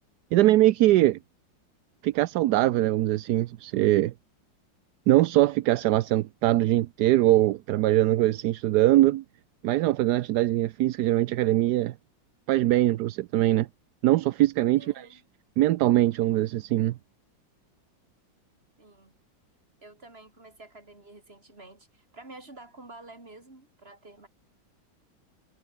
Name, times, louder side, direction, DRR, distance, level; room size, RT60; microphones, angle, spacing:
voice 1, 0.3-1.2 2.0-4.1 5.1-9.2 9.6-11.9 12.5-13.7 14.0-15.1 15.6-17.0, right 15 dB, 70° right, 1.0 m, -22 dB
voice 2, 14.8-15.2 18.8-19.1 19.8-24.3, right 2 dB, 30° right, 4.5 m, -49 dB
omnidirectional pair, 2.1 m